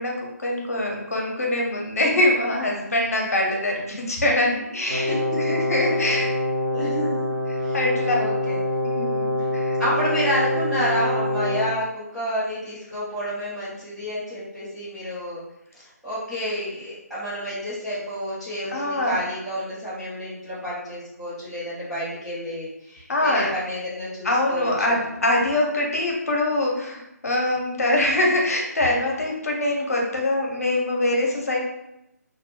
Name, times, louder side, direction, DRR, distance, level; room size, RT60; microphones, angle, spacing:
voice 1, 0.0-6.3 7.7-8.2 8.8-9.8 18.7-19.2 23.1-23.5 24.2-31.6, left 1 dB, 60° left, -1 dB, 0.7 m, -24 dB
voice 2, 4.9-5.2 5.5-5.6 6.7-7.3 7.6-8.6 9.8-15.4 15.7-25.0, equal, ahead, -16 dB, 0.3 m, -30 dB
Brass instrument, 4.9-11.8, left 2 dB, 75° right, 0.6 m, -25 dB
2.5 x 2.0 x 2.8 m, 0.84 s
figure-of-eight pair, 150°, 9 cm